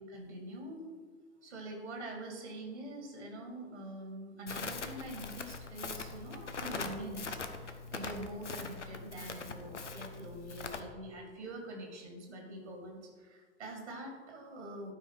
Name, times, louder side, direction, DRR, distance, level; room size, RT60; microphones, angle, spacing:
voice 1, 0.1-0.9 1.4-14.9, right 1 dB, 75° right, 1 dB, 2.6 m, -45 dB
Crackle, 4.5-10.8, left 4 dB, 85° left, 0.9 m, -42 dB
12.5 x 4.9 x 5.7 m, 1.5 s
figure-of-eight pair, 85°, 35 cm